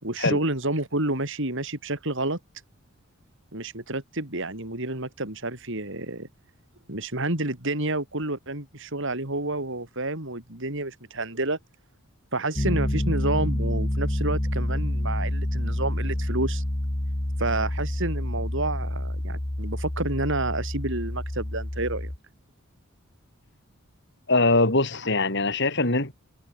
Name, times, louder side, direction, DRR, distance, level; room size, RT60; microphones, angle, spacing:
voice 1, 0.0-2.4 3.5-6.3 6.9-11.6 12.3-16.6 17.4-22.1, right 2 dB, 60° right, 4.5 m, -29 dB
Piano, 12.6-22.2, left 1 dB, 20° left, 1.1 m, -28 dB
voice 2, 24.3-26.1, left 2 dB, 55° left, 4.8 m, -22 dB
head